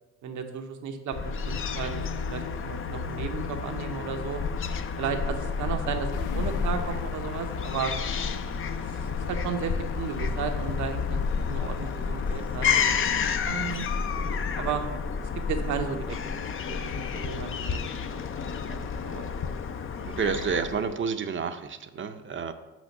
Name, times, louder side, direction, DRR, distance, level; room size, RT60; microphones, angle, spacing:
voice 1, 0.2-2.0 2.3-4.4 5.0-7.9 8.7-8.8 9.1-13.9 14.2-14.9 15.2-16.2 16.7-19.5, right 6 dB, 75° right, 6 dB, 0.9 m, -34 dB
Fowl / Gull seagull, 1.1-21.0, left 6 dB, 45° left, 0.6 m, -30 dB
sound 1, 6.1-12.8, left 8 dB, 90° left, 0.5 m, -42 dB
sound 2, 7.3-14.0, left 3 dB, 70° left, 1.9 m, -51 dB
voice 2, 20.0-22.5, right 5 dB, 40° right, 8 dB, 0.6 m, -30 dB
6.2 x 5.1 x 6.4 m, 1.1 s
cardioid pair, 90°, 30 cm